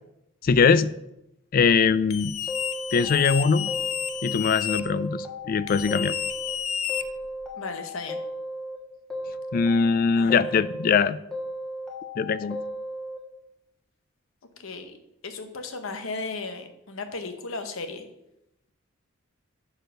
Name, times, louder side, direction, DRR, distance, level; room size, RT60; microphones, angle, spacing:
voice 1, 0.4-0.9 1.5-2.3 2.9-3.7 4.2-6.2 9.5-11.2 12.2-12.6, left 5 dB, 40° left, 16 dB, 0.3 m, -21 dB
sound 1, 2.1-4.8 5.7-7.5, left 10 dB, 85° left, 0.6 m, -31 dB
sound 2, 2.5-4.4 4.7-6.6 6.9-8.8 9.1-11.0 11.3-13.2, left 1 dB, 5° left, 1.4 m, -35 dB
voice 2, 7.6-8.2 10.2-10.4 14.6-15.0 15.2-18.0, left 3 dB, 70° left, 7 dB, 1.0 m, -35 dB
6.7 x 4.8 x 6.3 m, 0.85 s
head